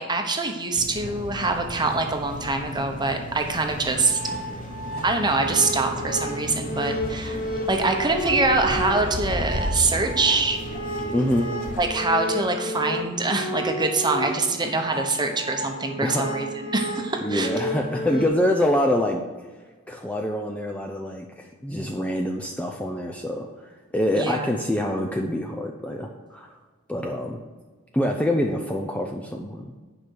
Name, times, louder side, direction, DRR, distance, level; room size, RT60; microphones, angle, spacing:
voice 1, 0.0-4.2 5.0-7.4 7.7-10.6 11.8-17.5 24.2-24.5, right 3 dB, 20° right, 4 dB, 1.0 m, -24 dB
sound 1, 0.7-11.9, left 1 dB, 40° left, 1.1 m, -34 dB
sound 2, 3.9-18.3, equal, 75° left, 3.5 m, -32 dB
voice 2, 11.1-11.5 16.0-16.2 17.2-19.2 19.9-26.5 26.9-27.4 27.9-29.7, left 1 dB, 5° left, 2 dB, 0.5 m, -25 dB
9.7 x 5.2 x 6.3 m, 1.4 s
head